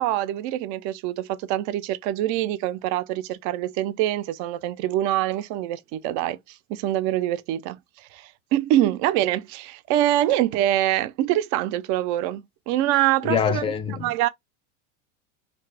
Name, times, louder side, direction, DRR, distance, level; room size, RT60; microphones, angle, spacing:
voice 1, 0.0-13.6 14.0-14.3, right 13 dB, 50° right, 0.5 m, -25 dB
voice 2, 13.2-14.1, left 6 dB, 15° left, 0.5 m, -24 dB
2.8 x 2.4 x 3.3 m
supercardioid pair, 125°, 39 cm